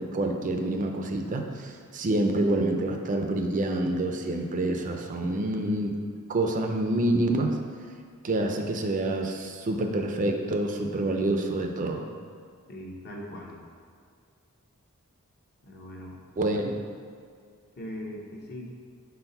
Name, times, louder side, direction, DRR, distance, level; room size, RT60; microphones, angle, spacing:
voice 1, 0.0-6.0 6.3-7.6 8.2-12.1 16.4-16.7, right 1 dB, 35° right, 3 dB, 0.4 m, -27 dB
voice 2, 12.7-13.6 15.6-16.2 16.6-16.7 17.8-18.7, left 1 dB, 45° left, -2 dB, 1.0 m, -40 dB
4.5 x 4.1 x 5.4 m, 2.2 s
head